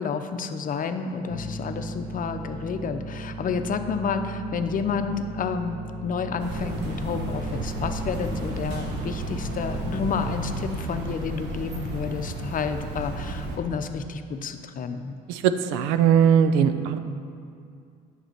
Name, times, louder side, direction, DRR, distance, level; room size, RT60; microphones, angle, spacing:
voice 1, 0.0-15.2, left 5 dB, 45° left, 8 dB, 0.7 m, -30 dB
sound 1, 1.3-10.3, right 2 dB, 35° right, 1.9 m, -36 dB
sound 2, 6.4-13.6, right 1 dB, 65° right, 1.4 m, -33 dB
voice 2, 15.3-17.0, right 8 dB, 80° right, 10 dB, 0.5 m, -20 dB
8.9 x 6.8 x 4.6 m, 2.3 s
hypercardioid pair, 65°, 19 cm